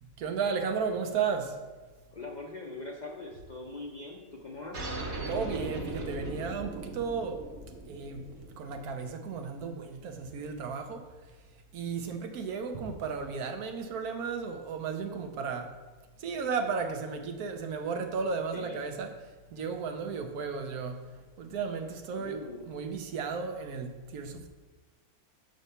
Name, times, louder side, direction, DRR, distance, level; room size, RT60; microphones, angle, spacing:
voice 1, 0.2-1.6 5.3-7.4 7.9-8.3 8.6-11.0 11.7-15.7 16.2-19.2 19.5-21.1 21.4-24.5, right 5 dB, 80° right, 1.2 m, -34 dB
voice 2, 2.1-4.9 18.5-18.8 22.1-22.7, left 2 dB, 45° left, 0.6 m, -42 dB
sound 1, 4.7-9.8, right 2 dB, 40° right, 1.0 m, -39 dB
6.6 x 4.1 x 5.5 m
omnidirectional pair, 1.6 m